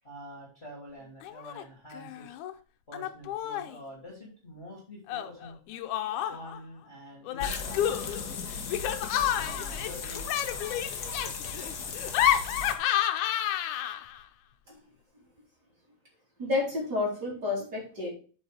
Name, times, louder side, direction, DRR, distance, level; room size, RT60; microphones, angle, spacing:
voice 1, 0.0-2.4 2.9-5.6 6.3-8.6 9.3-10.2, equal, 20° left, -3 dB, 2.6 m, -47 dB
Laughter, 1.2-1.6 1.9-2.5 2.9-3.8 5.1-6.6 7.3-14.2, left 11 dB, 85° left, 2.2 m, -30 dB
sound 1, 7.4-12.7, left 5 dB, 70° left, 0.9 m, -37 dB
voice 2, 16.4-18.1, left 3 dB, 35° right, -4 dB, 3.5 m, -30 dB
8.1 x 5.2 x 4.9 m, 0.38 s
omnidirectional pair, 3.4 m